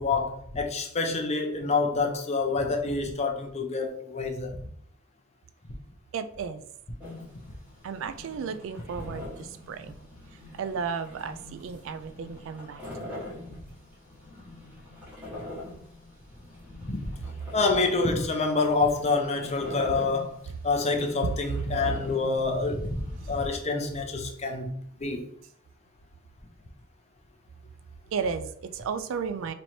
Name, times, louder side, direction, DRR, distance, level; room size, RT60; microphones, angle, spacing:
voice 1, 0.0-4.6 16.8-17.1 17.5-20.4 20.6-24.7 25.0-25.2, left 3 dB, 30° left, 0.6 m, -27 dB
voice 2, 6.1-6.6 7.8-10.1 10.5-13.3 28.1-29.5, right 6 dB, 65° right, 0.3 m, -34 dB
sound 1, 7.0-23.5, left 1 dB, 5° right, 1.3 m, -44 dB
3.1 x 2.9 x 4.1 m
head